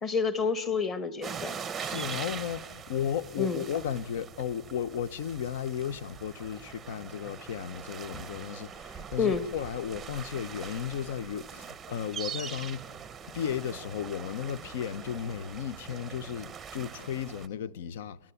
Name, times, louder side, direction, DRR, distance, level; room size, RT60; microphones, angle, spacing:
voice 1, 0.0-1.6 3.4-3.6 9.2-9.5, left 5 dB, 15° left, 1.2 m, -29 dB
sound 1, 1.2-17.5, right 7 dB, 10° right, 0.7 m, -42 dB
voice 2, 1.8-12.9 13.3-18.3, left 9 dB, 65° left, 0.8 m, -34 dB
28.5 x 12.0 x 9.9 m
supercardioid pair, 170°, 0 cm